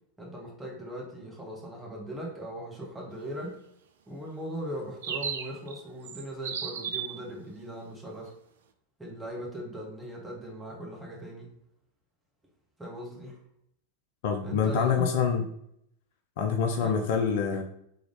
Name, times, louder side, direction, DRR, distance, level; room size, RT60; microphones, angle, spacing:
voice 1, 0.2-3.6 4.1-8.3 9.0-11.5 12.8-13.4 14.4-15.1 16.8-17.1, equal, 10° right, -2 dB, 1.4 m, -39 dB
sound 1, 5.0-5.8 6.0-7.2, right 7 dB, 60° right, 0.4 m, -34 dB
voice 2, 14.2-15.4 16.4-17.6, left 6 dB, 50° left, 4 dB, 0.5 m, -26 dB
3.8 x 3.3 x 3.8 m, 0.74 s
figure-of-eight pair, 90°, 0 cm